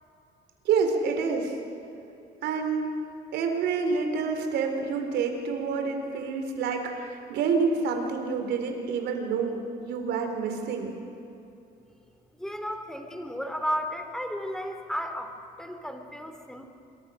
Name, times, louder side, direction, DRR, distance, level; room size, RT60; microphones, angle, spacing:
voice 1, 0.6-1.6 2.4-2.9 3.3-10.9, right 5 dB, 80° right, 5 dB, 4.1 m, -28 dB
voice 2, 12.4-16.7, equal, 5° left, 6 dB, 3.0 m, -33 dB
26.5 x 23.5 x 6.5 m, 2.8 s
cardioid pair, 110°, 17 cm